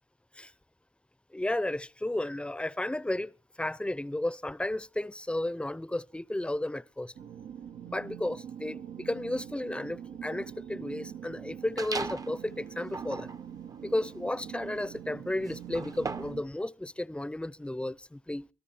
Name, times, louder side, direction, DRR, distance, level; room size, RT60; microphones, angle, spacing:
voice 1, 1.3-3.3 3.6-7.1 7.9-13.3 13.8-18.5, left 1 dB, 10° left, 0.7 m, -33 dB
sound 1, 7.2-16.4, right 9 dB, 80° right, 0.9 m, -44 dB
sound 2, 11.8-12.4 12.8-16.5, right 3 dB, 30° right, 0.7 m, -39 dB
24.5 x 13.5 x 2.8 m
supercardioid pair, 55°, 12 cm